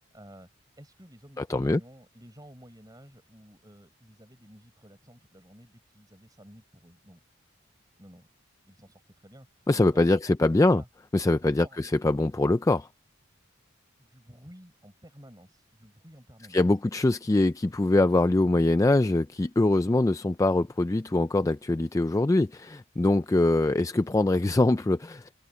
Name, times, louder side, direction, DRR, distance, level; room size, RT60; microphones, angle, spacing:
voice 1, 0.0-7.2 8.0-8.3 8.7-10.9 11.4-11.8 14.0-16.6, equal, 20° right, 4.8 m, -52 dB
voice 2, 1.4-1.8 9.7-10.8 11.1-12.9 16.5-25.3, left 2 dB, 15° left, 0.3 m, -23 dB
open air
head